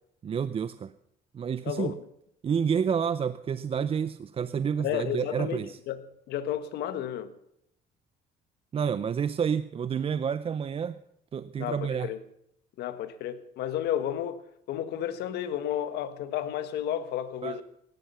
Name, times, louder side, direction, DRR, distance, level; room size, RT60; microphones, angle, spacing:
voice 1, 0.2-0.9 1.3-2.0 2.4-5.8 8.7-11.0 11.3-12.1 17.4-17.6, right 7 dB, 35° right, 0.6 m, -29 dB
voice 2, 1.6-2.0 4.8-5.6 5.9-6.0 6.3-7.3 11.6-12.2 12.8-14.4 14.7-17.6, left 10 dB, 75° left, 1.5 m, -32 dB
16.5 x 12.0 x 5.7 m
cardioid pair, 110°, 17 cm